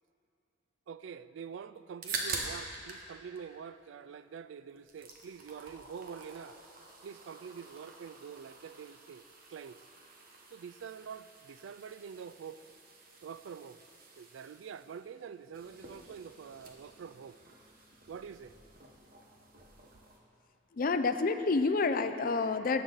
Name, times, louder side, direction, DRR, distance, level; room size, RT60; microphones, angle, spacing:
voice 1, 0.9-6.6 7.0-9.2 9.5-9.8 10.5-12.6 13.2-13.8 14.2-17.4 18.1-18.6, right 7 dB, 80° right, 14 dB, 0.3 m, -46 dB
sound 1, 1.8-3.1 3.3-4.4 4.7-20.2, right 3 dB, 50° right, 1.2 m, -46 dB
voice 2, 20.7-22.8, left 4 dB, 50° left, 9 dB, 0.5 m, -29 dB
17.5 x 7.4 x 4.0 m, 2.7 s
head